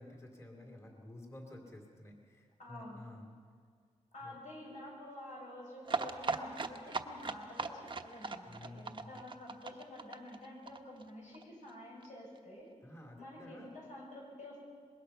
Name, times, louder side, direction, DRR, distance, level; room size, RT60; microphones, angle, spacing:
voice 1, 0.0-3.3 4.2-4.4 8.4-9.2 12.8-13.7, left 1 dB, 20° left, 1 dB, 3.0 m, -52 dB
voice 2, 2.6-3.0 4.1-12.7 13.2-14.6, left 1 dB, 75° left, -2 dB, 7.5 m, -49 dB
sound 1, 5.8-11.4 11.7-11.8 12.0-12.1 12.4-12.5, right 4 dB, 40° right, 1.0 m, -39 dB
25.0 x 21.0 x 5.8 m, 2.1 s
wide cardioid pair, 150°, 12 cm